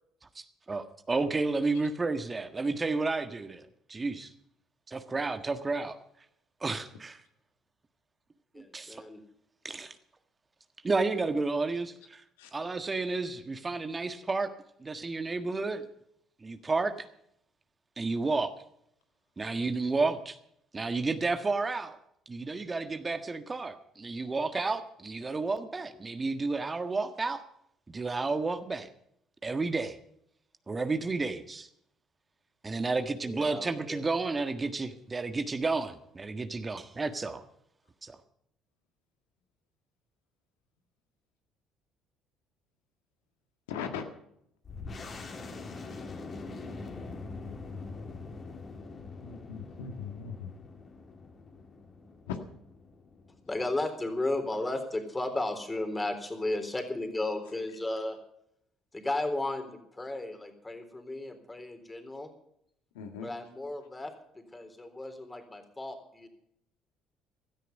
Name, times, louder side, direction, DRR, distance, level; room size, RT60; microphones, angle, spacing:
voice 1, 0.3-4.3 4.9-6.0 6.6-7.2 8.5-9.0 9.6-9.9 10.8-12.2 12.5-14.5 14.8-15.8 16.4-17.1 18.0-18.5 19.4-20.4 20.7-22.0 22.3-27.4 27.9-28.9 29.4-30.0 30.7-31.7 32.6-37.4 38.0-38.2, right 3 dB, 25° right, 8 dB, 1.5 m, -31 dB
voice 2, 8.5-9.2 33.2-34.0 53.5-58.2 58.9-62.3 63.2-66.3, left 2 dB, 20° left, 7 dB, 3.8 m, -34 dB
voice 3, 43.7-44.0 49.0-50.5 52.3-52.4 62.9-63.3, left 7 dB, 80° left, 5 dB, 1.8 m, -39 dB
sound 1, 44.7-53.9, left 3 dB, 40° left, 3.4 m, -44 dB
16.5 x 13.0 x 5.4 m, 0.73 s
hypercardioid pair, 55°, 0 cm